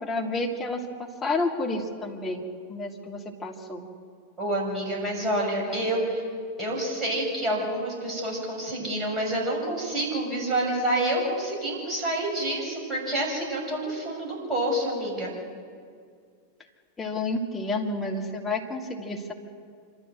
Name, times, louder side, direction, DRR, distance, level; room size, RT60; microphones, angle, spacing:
voice 1, 0.0-3.9 5.7-5.8 17.0-19.3, left 2 dB, 15° left, -2 dB, 2.8 m, -30 dB
voice 2, 4.4-6.3 6.6-15.3, right 1 dB, 20° right, -2 dB, 7.3 m, -28 dB
26.5 x 13.5 x 7.8 m, 2.1 s
figure-of-eight pair, 90°, 0 cm